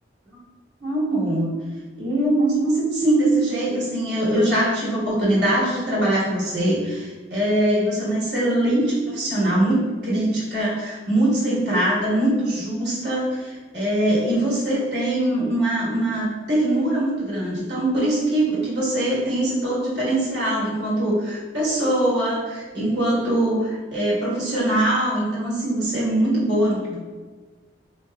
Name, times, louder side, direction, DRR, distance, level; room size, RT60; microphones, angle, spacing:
voice 1, 0.8-1.6 2.0-27.0, right 1 dB, 65° right, -7 dB, 1.3 m, -22 dB
4.4 x 2.9 x 2.3 m, 1.4 s
head